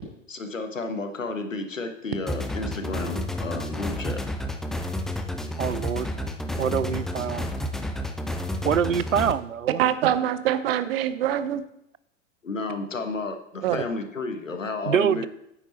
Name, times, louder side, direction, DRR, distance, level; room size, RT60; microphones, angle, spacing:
voice 1, 0.3-4.3 12.4-15.3, left 3 dB, 80° left, 7 dB, 1.5 m, -32 dB
sound 1, 2.3-9.3, left 1 dB, ahead, 0.4 m, -31 dB
voice 2, 5.6-6.1 6.6-7.5 8.6-9.8 14.9-15.3, right 8 dB, 85° right, 18 dB, 0.5 m, -25 dB
voice 3, 9.8-11.6 13.6-13.8, right 11 dB, 50° right, 13 dB, 0.9 m, -24 dB
10.0 x 9.0 x 4.4 m, 0.78 s
figure-of-eight pair, 95°, 38 cm